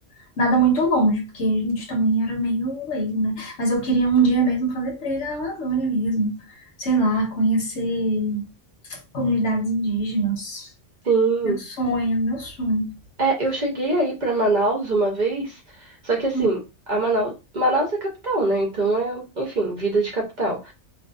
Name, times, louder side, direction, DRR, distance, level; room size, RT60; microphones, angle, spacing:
voice 1, 0.4-6.4 6.8-8.5 8.9-10.7 11.4-12.9 16.3-16.5, right 2 dB, 70° left, 1.1 m, -23 dB
voice 2, 11.0-11.6 13.2-16.6 16.9-20.7, right 2 dB, 45° right, 0.7 m, -23 dB
2.5 x 2.3 x 2.4 m
omnidirectional pair, 1.2 m